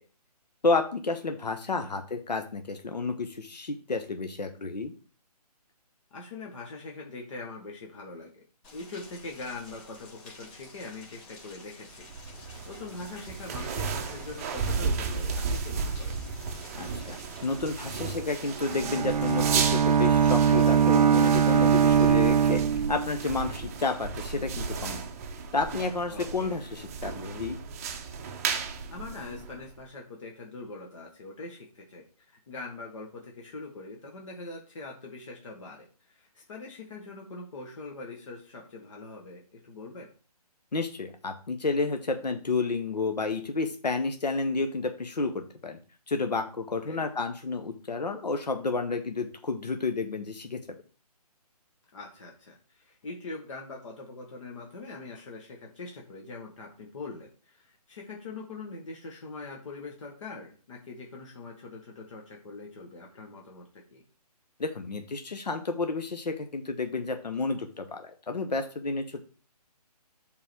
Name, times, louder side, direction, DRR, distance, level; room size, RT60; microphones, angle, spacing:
voice 1, 0.6-4.9 16.7-17.2 17.4-25.0 25.5-27.6 40.7-45.8 46.1-50.6 64.6-69.2, left 3 dB, 85° left, 6 dB, 1.1 m, -31 dB
voice 2, 6.1-8.4 8.7-16.2 26.1-26.6 28.9-40.1 46.7-47.1 51.9-64.0, left 3 dB, 50° left, -1 dB, 1.8 m, -43 dB
Rain, 8.6-22.1, left 2 dB, 20° left, 2.5 m, -50 dB
sound 1, 12.0-29.8, right 5 dB, 20° right, 0.7 m, -34 dB
Bowed string instrument, 18.6-23.4, right 7 dB, 85° right, 0.4 m, -22 dB
7.6 x 4.0 x 4.5 m, 0.39 s
hypercardioid pair, 150°, 21 cm